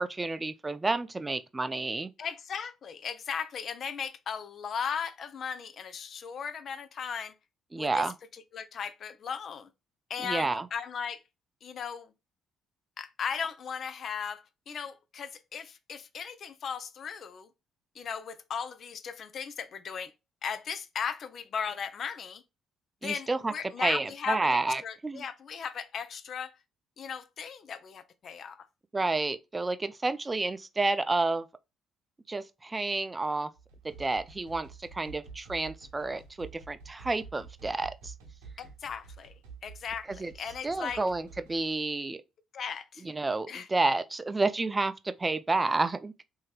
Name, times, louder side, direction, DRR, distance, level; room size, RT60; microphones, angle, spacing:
voice 1, 0.0-2.1 7.7-8.1 10.2-10.7 23.0-23.5 23.8-25.2 28.9-31.5 32.3-33.5 33.8-38.1 40.2-40.3 40.6-42.2 43.0-46.1, right 3 dB, 25° right, 0.4 m, -30 dB
voice 2, 2.2-7.3 7.8-8.1 8.3-9.7 10.1-11.2 11.6-12.1 13.0-17.5 17.9-20.1 20.4-22.4 23.0-26.6 27.0-28.7 38.6-39.3 39.6-41.0 42.5-43.0 43.5-43.7, left 7 dB, 55° left, 0.4 m, -37 dB
sound 1, 33.5-41.7, right 5 dB, 85° right, 0.7 m, -49 dB
3.1 x 2.7 x 2.3 m
hypercardioid pair, 50°, 0 cm